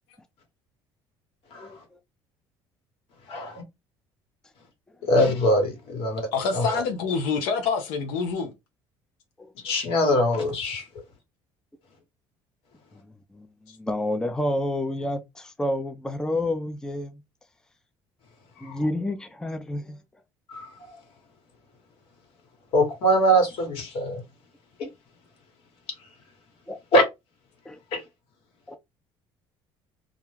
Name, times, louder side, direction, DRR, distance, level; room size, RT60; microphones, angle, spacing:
voice 1, 3.3-3.6 5.1-6.3 6.5-6.7 9.6-10.8 18.6-18.9 20.5-20.7 22.7-24.2 26.9-27.1 27.9-28.0, equal, 65° left, 1.3 m, -22 dB
voice 2, 6.3-8.5 10.7-10.8 13.7-13.8, left 5 dB, 85° left, 0.6 m, -27 dB
voice 3, 12.9-17.2 18.6-20.0 26.7-26.8 27.7-27.8 28.7-28.8, left 1 dB, 5° left, 0.4 m, -29 dB
2.4 x 2.2 x 3.1 m
supercardioid pair, 95°, 10 cm